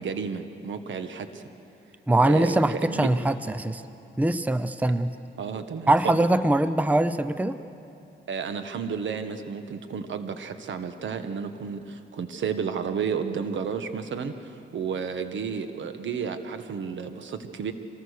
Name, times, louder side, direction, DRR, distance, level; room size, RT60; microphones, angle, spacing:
voice 1, 0.0-1.5 2.3-3.1 5.4-6.2 8.3-17.7, right 6 dB, 70° right, 8 dB, 1.4 m, -32 dB
voice 2, 2.1-3.8 4.2-5.1 5.9-7.6, right 1 dB, 10° right, 12 dB, 0.7 m, -22 dB
25.5 x 19.0 x 6.7 m, 2.7 s
cardioid pair, 80°, 20 cm